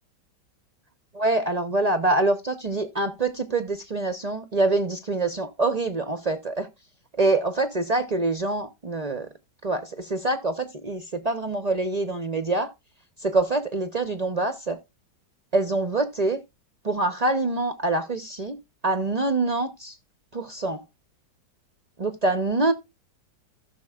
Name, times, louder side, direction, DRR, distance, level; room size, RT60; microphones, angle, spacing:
voice 1, 1.1-6.7 7.2-9.3 9.6-12.7 13.2-14.8 15.5-16.4 16.8-18.6 18.8-19.9 20.3-20.8 22.0-22.7, right 2 dB, 70° right, 0.3 m, -25 dB
15.0 x 6.6 x 2.3 m
omnidirectional pair, 1.9 m